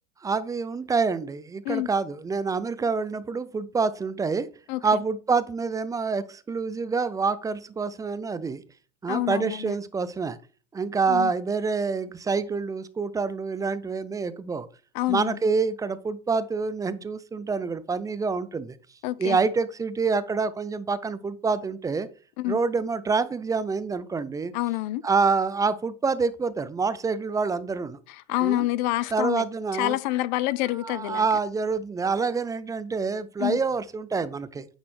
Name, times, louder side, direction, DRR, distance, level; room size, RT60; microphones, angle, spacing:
voice 1, 0.2-4.5 4.8-8.6 9.0-10.4 10.7-14.7 15.1-18.8 19.2-22.1 22.4-24.5 25.0-28.0 28.4-28.7 29.1-30.0 30.7-34.7, right 4 dB, 10° right, 0.4 m, -27 dB
voice 2, 9.1-9.7 11.1-11.3 14.9-15.4 19.0-19.4 22.4-22.6 24.5-25.0 28.3-29.4 29.7-31.2 33.4-33.6, left 17 dB, 50° left, 0.5 m, -27 dB
9.4 x 4.0 x 3.2 m
hypercardioid pair, 100°, 31 cm